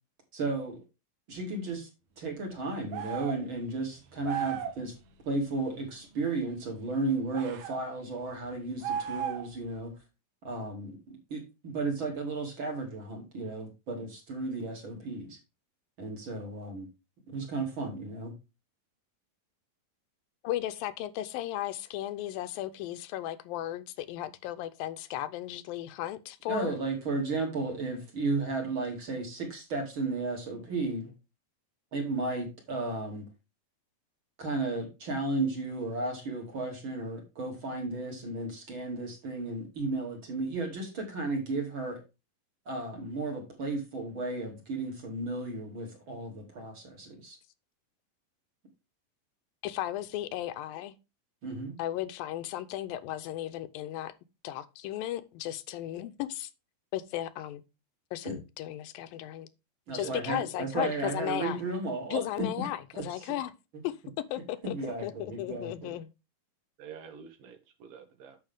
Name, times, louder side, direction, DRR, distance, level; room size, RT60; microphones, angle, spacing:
voice 1, 0.3-0.8 1.3-1.9 2.2-4.9 5.3-9.9 10.4-10.9 11.3-15.4 16.0-16.9 17.3-18.3 26.5-31.1 31.9-33.3 34.4-42.0 42.7-47.4 51.4-51.8 58.2-58.4 59.9-62.7 62.9-63.0 64.6-65.9, right 3 dB, 35° right, 3.4 m, -34 dB
sound 1, 2.9-3.4 4.2-4.8 7.3-7.8 8.8-9.6, right 9 dB, 65° right, 2.2 m, -34 dB
voice 2, 20.4-26.7 49.6-50.9 51.8-54.1 54.4-56.5 56.9-57.6 58.1-59.5 59.9-61.6 62.1-63.5 63.8-66.1, left 13 dB, 85° left, 2.5 m, -35 dB
voice 3, 59.9-60.6 66.8-68.4, right 7 dB, 80° right, 3.2 m, -47 dB
9.1 x 7.2 x 3.5 m
omnidirectional pair, 4.1 m